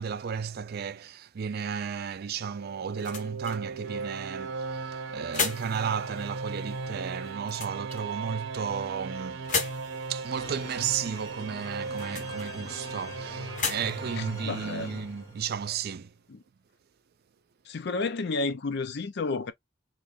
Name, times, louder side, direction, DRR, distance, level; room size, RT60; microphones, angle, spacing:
voice 1, 0.0-9.5 10.1-16.1, right 7 dB, 55° right, 0.4 m, -34 dB
sound 1, 2.1-15.6, left 4 dB, 40° left, 1.1 m, -39 dB
sound 2, 2.4-15.4, right 4 dB, 75° right, 0.8 m, -38 dB
sound 3, 10.3-15.6, left 2 dB, 20° left, 0.7 m, -43 dB
voice 2, 14.2-14.9 16.3-16.4 17.7-19.5, left 3 dB, 60° left, 0.5 m, -31 dB
3.1 x 2.5 x 3.8 m
head